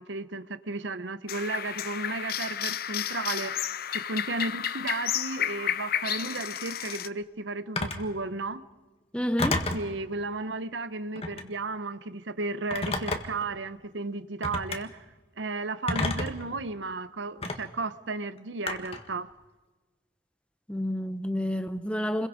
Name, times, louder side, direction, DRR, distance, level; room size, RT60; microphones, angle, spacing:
voice 1, 0.0-3.7 3.9-8.6 9.7-14.9 15.4-19.3, right 3 dB, 75° right, 0.9 m, -34 dB
sound 1, 1.3-7.1, left 10 dB, 50° left, 0.6 m, -32 dB
Telephone, 7.8-8.1 9.4-9.9 11.1-11.5 12.7-13.4 14.4-14.8 15.9-16.4 17.4-17.6 18.7-19.1, left 2 dB, 30° left, 1.7 m, -29 dB
voice 2, 9.1-9.6 20.7-22.3, equal, 5° left, 0.9 m, -29 dB
28.5 x 22.0 x 5.1 m
head